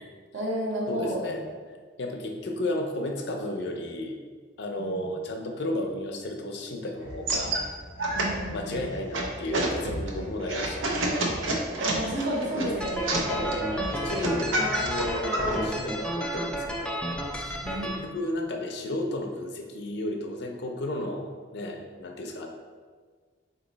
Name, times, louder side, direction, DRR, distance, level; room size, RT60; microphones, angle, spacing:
voice 1, 0.3-1.3 4.8-5.1 8.1-8.9 11.8-14.2 17.6-18.0, right 1 dB, 65° right, -4 dB, 1.1 m, -32 dB
voice 2, 0.9-1.4 2.0-4.2 4.6-7.6 8.5-10.9 12.5-13.5 13.9-17.0 17.3-17.6 18.0-22.5, left 1 dB, 60° left, 3 dB, 0.5 m, -33 dB
sound 1, 7.0-15.6, right 1 dB, 85° right, 0.6 m, -30 dB
sound 2, 12.8-18.0, equal, 5° left, 0.3 m, -32 dB
3.9 x 3.0 x 3.9 m, 1.5 s
head